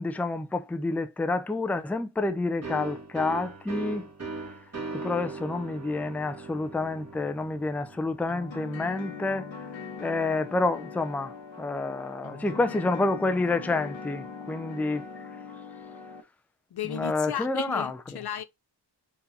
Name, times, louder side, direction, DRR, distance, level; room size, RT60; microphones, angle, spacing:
voice 1, 0.0-4.1 5.0-9.5 10.0-15.3 16.9-18.0, left 2 dB, 5° left, 0.4 m, -29 dB
sound 1, 2.6-10.1, right 3 dB, 35° right, 2.0 m, -40 dB
sound 2, 8.3-16.2, left 5 dB, 80° left, 1.2 m, -41 dB
voice 2, 16.7-18.4, left 10 dB, 60° left, 0.6 m, -34 dB
4.4 x 2.6 x 4.0 m
cardioid pair, 40°, 45 cm